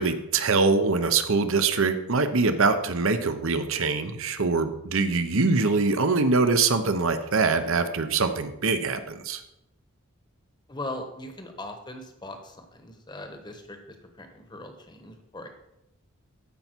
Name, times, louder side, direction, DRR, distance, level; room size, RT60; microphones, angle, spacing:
voice 1, 0.0-9.4, right 4 dB, 65° right, 9 dB, 0.8 m, -23 dB
voice 2, 10.7-15.5, left 1 dB, 20° left, 6 dB, 1.0 m, -40 dB
14.0 x 5.6 x 4.5 m, 0.88 s
head